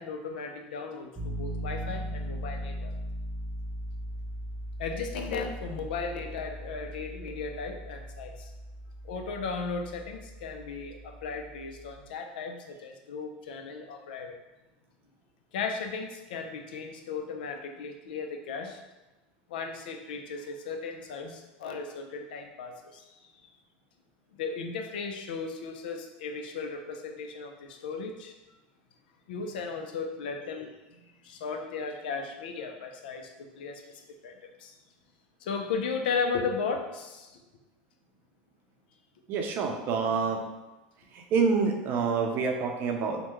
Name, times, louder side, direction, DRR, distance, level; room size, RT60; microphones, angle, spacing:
voice 1, 0.0-2.9 4.8-8.5 9.0-14.4 15.5-18.8 19.5-23.3 24.4-28.3 29.3-30.7 31.2-34.8 35.4-37.4, left 5 dB, 85° left, 4 dB, 0.4 m, -36 dB
Piano, 1.2-12.0, equal, 5° right, 1.0 m, -39 dB
voice 2, 39.3-40.4 41.1-43.2, right 5 dB, 45° right, 3 dB, 0.5 m, -27 dB
3.4 x 2.2 x 3.0 m, 1.1 s
supercardioid pair, 110°, 5 cm